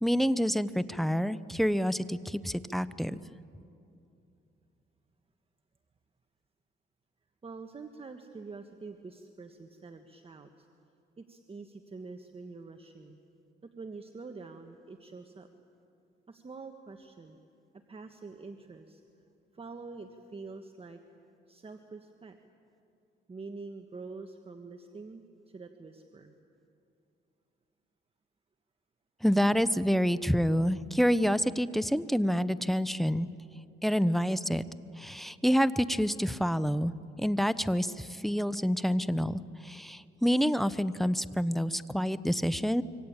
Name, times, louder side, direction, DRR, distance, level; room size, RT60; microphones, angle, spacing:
voice 1, 0.0-3.2 29.2-33.3 33.8-34.7 35.0-36.9 37.2-42.8, equal, ahead, 14 dB, 0.8 m, -28 dB
voice 2, 7.4-10.7 11.2-13.2 13.8-15.5 16.3-17.4 17.9-19.0 19.5-21.0 21.5-22.4 23.3-26.3, right 4 dB, 30° right, 6 dB, 1.5 m, -46 dB
26.0 x 24.0 x 8.9 m, 2.6 s
cardioid pair, 90°, 20 cm